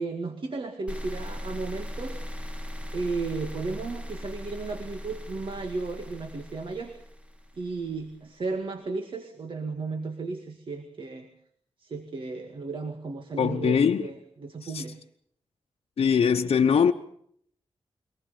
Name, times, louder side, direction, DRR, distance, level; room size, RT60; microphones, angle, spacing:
voice 1, 0.0-2.2 2.9-6.9 7.6-11.3 11.8-14.9, right 3 dB, 55° right, 2.1 m, -34 dB
sound 1, 0.9-8.0, equal, 10° right, 1.9 m, -39 dB
voice 2, 13.4-14.0 14.7-14.8 16.0-16.9, left 7 dB, 70° left, 0.9 m, -21 dB
23.5 x 19.0 x 7.0 m
wide cardioid pair, 115°, 10 cm